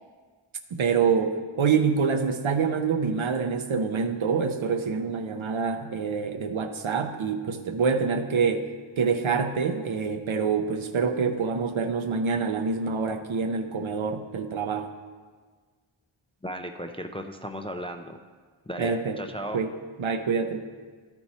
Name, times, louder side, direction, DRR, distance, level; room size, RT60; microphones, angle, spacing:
voice 1, 0.7-8.7 9.0-14.9 18.8-19.2 19.5-19.7 20.0-20.6, right 5 dB, 70° right, 7 dB, 0.7 m, -26 dB
voice 2, 16.4-18.2 18.7-19.6, equal, 15° left, 5 dB, 0.3 m, -35 dB
13.0 x 4.5 x 4.1 m, 1.5 s
wide cardioid pair, 90°, 49 cm